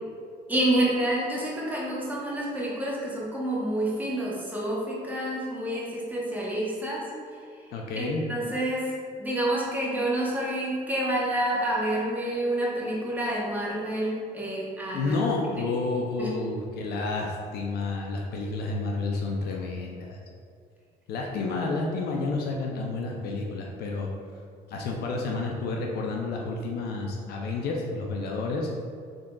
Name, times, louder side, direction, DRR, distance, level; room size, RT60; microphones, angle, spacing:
voice 1, 0.5-7.0 8.0-8.9 9.2-15.1 16.2-16.3, right 1 dB, 10° right, -5 dB, 0.8 m, -28 dB
voice 2, 7.7-8.3 14.9-20.2 21.1-24.1 24.7-28.7, left 3 dB, 70° left, 0 dB, 0.5 m, -30 dB
3.7 x 3.7 x 2.2 m, 2.2 s
cardioid pair, 110°, 17 cm